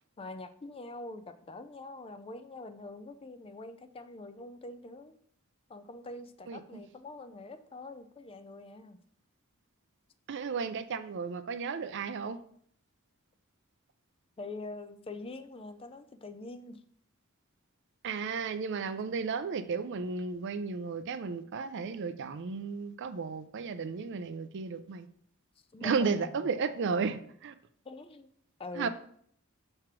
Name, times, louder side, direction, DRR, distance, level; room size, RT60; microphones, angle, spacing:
voice 1, 0.2-5.1 5.7-9.0 14.4-16.8 25.7-26.5 27.8-28.3 28.6-28.9, left 2 dB, 25° left, 10 dB, 0.4 m, -44 dB
voice 2, 6.5-6.8 10.3-12.4 18.0-25.1 25.8-27.5 28.8-28.9, right 5 dB, 55° right, 12 dB, 0.4 m, -33 dB
6.0 x 3.3 x 5.9 m, 0.63 s
head